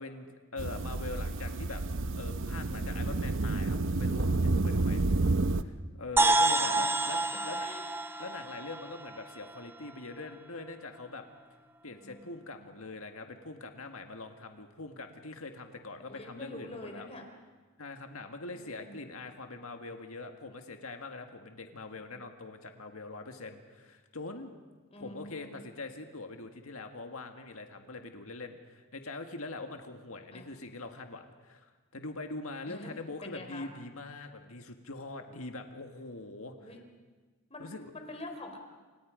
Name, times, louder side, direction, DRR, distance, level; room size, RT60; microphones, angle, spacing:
voice 1, 0.0-1.8 2.2-5.0 5.6-7.7 8.2-11.2 11.8-17.1 17.8-24.5 25.0-36.6 37.6-37.9, left 3 dB, 75° left, 5 dB, 1.8 m, -43 dB
sound 1, 0.6-5.6, right 2 dB, 60° right, 0.8 m, -30 dB
sound 2, 6.2-9.9, right 2 dB, 10° right, 0.9 m, -29 dB
voice 2, 11.8-12.3 16.1-17.2 18.5-19.1 21.8-22.2 24.9-25.7 30.3-30.5 32.7-32.9 33.2-33.7 36.6-36.8 37.5-37.7 37.9-38.6, left 2 dB, 30° left, 4 dB, 3.6 m, -46 dB
29.0 x 27.0 x 5.1 m, 1.4 s
head